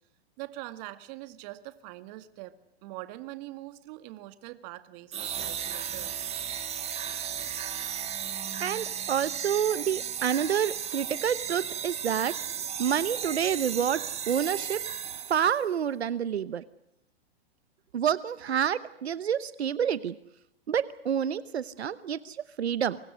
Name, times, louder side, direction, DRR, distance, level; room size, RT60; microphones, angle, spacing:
voice 1, 0.4-6.3, right 17 dB, 45° right, 11 dB, 2.0 m, -43 dB
sound 1, 5.1-15.6, right 8 dB, 20° right, 2.1 m, -35 dB
voice 2, 8.6-12.4 12.8-14.8 15.3-16.7 17.9-20.1 20.7-23.0, right 8 dB, 90° right, 15 dB, 1.1 m, -28 dB
28.5 x 24.0 x 6.4 m, 0.81 s
hypercardioid pair, 130°, 31 cm